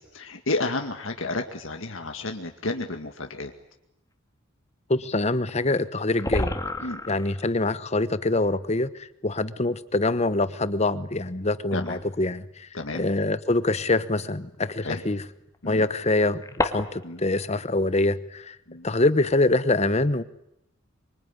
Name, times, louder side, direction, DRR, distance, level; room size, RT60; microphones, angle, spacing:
voice 1, 0.0-3.5 6.8-7.0 11.7-12.0 12.7-13.1 14.8-15.0 15.6-15.9 17.0-17.2 18.7-18.9, left 2 dB, 75° left, 4 dB, 2.1 m, -31 dB
sound 1, 2.9-3.0 5.5-5.6 5.8-5.9 6.1-7.5 8.9-9.0 9.8-9.9 11.8-12.1 13.4-13.5 15.5-17.2, left 2 dB, 15° left, 1.9 m, -30 dB
voice 2, 4.9-6.6 7.1-8.9 9.2-12.4 12.9-15.2 15.6-18.5 18.8-20.2, left 2 dB, 35° left, 14 dB, 1.1 m, -24 dB
25.0 x 24.5 x 9.8 m, 0.79 s
head